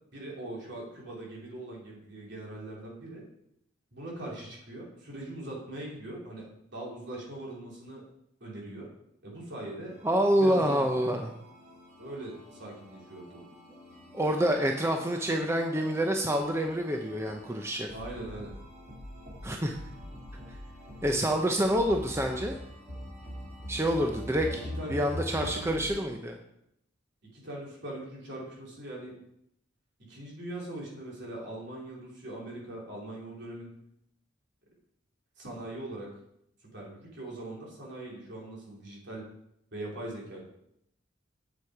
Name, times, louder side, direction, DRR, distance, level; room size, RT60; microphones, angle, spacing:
voice 1, 0.1-3.2 3.9-6.4 6.7-8.0 8.4-8.9 9.2-9.9 10.4-11.2 12.0-13.4 17.9-18.5 24.4-25.0 25.4-26.0 27.3-29.2 30.0-33.7 35.4-36.1 36.7-39.2 39.7-40.4, right 1 dB, 60° right, -3 dB, 3.1 m, -41 dB
sound 1, 9.9-25.9, left 1 dB, 40° right, 2.8 m, -44 dB
voice 2, 10.0-11.3 14.1-17.9 19.4-19.8 21.0-22.6 23.7-24.6 24.9-26.4, equal, 15° right, 3 dB, 0.6 m, -27 dB
8.1 x 7.3 x 4.8 m, 0.77 s
head